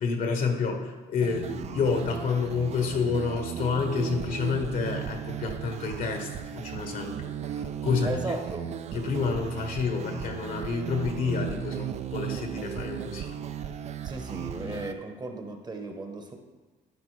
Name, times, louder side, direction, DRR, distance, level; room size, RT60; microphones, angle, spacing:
voice 1, 0.0-8.1 8.9-13.4 14.6-14.9, left 5 dB, 55° left, 4 dB, 1.1 m, -29 dB
sound 1, 1.2-14.9, right 9 dB, 40° right, 0.4 m, -36 dB
voice 2, 8.0-8.7 14.0-16.3, right 2 dB, 25° right, 4 dB, 1.0 m, -36 dB
11.5 x 4.8 x 3.2 m, 1.3 s
cardioid pair, 110°, 17 cm